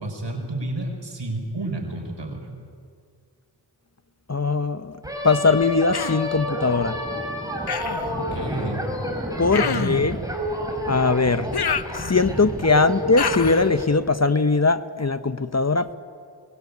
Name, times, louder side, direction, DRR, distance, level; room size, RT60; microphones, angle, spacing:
voice 1, 0.0-2.5 8.1-8.9 9.5-10.0, right 2 dB, 75° right, 1 dB, 5.2 m, -31 dB
voice 2, 4.3-4.9 5.2-6.9 9.4-10.2 10.9-11.5 11.9-16.0, left 3 dB, 35° left, 12 dB, 1.0 m, -20 dB
sound 1, 5.0-13.8, equal, 10° right, 5.2 m, -29 dB
Human voice, 5.9-6.3 7.7-8.1 9.5-10.1 11.5-12.4 13.2-13.7, left 6 dB, 60° left, 0.9 m, -28 dB
24.0 x 21.0 x 8.5 m, 2.2 s
cardioid pair, 40°, 43 cm